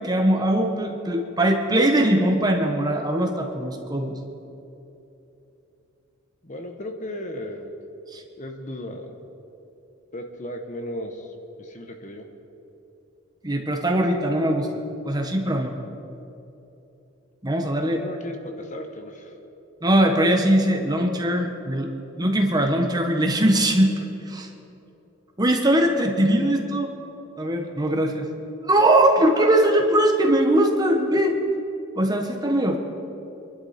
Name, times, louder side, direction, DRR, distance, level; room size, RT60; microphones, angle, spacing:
voice 1, 0.0-4.1 8.1-8.2 13.4-14.7 15.0-15.7 17.4-18.0 19.8-21.9 22.2-24.0 24.3-24.5 25.4-26.9 27.4-28.3 28.6-31.3 32.0-32.8, right 1 dB, 20° right, 3 dB, 1.3 m, -21 dB
voice 2, 6.4-7.7 8.4-9.2 10.1-12.3 17.7-19.4, left 1 dB, 35° left, 5 dB, 1.2 m, -35 dB
26.0 x 11.5 x 4.4 m, 2.9 s
head